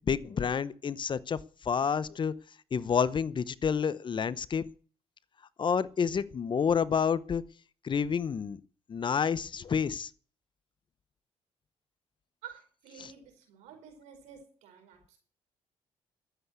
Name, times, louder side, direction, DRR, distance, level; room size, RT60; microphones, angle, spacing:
voice 1, 0.1-1.4 1.6-2.3 2.7-4.6 5.6-7.4 7.8-8.6 8.9-10.1 13.0-13.1, left 6 dB, 45° left, 18 dB, 0.8 m, -29 dB
voice 2, 12.4-15.2, right 8 dB, 85° right, 5 dB, 4.8 m, -51 dB
13.0 x 8.2 x 8.1 m, 0.41 s
supercardioid pair, 70°, 12 cm